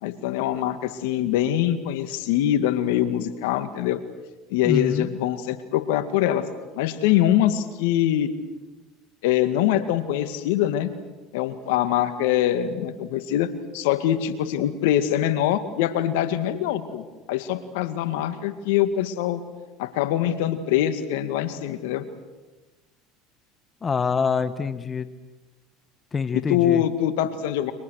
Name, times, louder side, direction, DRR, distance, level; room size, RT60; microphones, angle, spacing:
voice 1, 0.0-4.0 4.5-6.4 6.7-8.3 9.2-10.9 11.3-13.5 13.7-19.4 19.8-22.0 26.3-27.7, left 11 dB, 80° left, 10 dB, 2.1 m, -23 dB
voice 2, 4.6-5.1 23.8-25.1 26.1-26.8, left 5 dB, 30° left, 12 dB, 1.4 m, -25 dB
29.5 x 26.0 x 6.6 m, 1.2 s
supercardioid pair, 95°, 0 cm